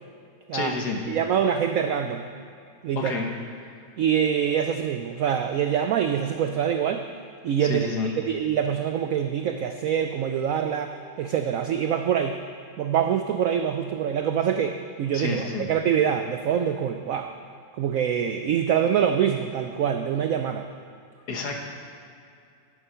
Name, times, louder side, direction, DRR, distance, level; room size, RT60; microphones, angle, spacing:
voice 1, 0.5-1.0 3.0-3.3 7.6-8.1 15.1-15.6 21.3-21.6, left 4 dB, 65° left, 2 dB, 1.7 m, -29 dB
voice 2, 1.1-2.3 2.8-3.1 4.0-7.0 7.4-12.4 12.8-17.3 17.8-20.7, right 8 dB, 75° right, 6 dB, 0.7 m, -25 dB
11.0 x 8.4 x 5.6 m, 2.5 s
omnidirectional pair, 2.0 m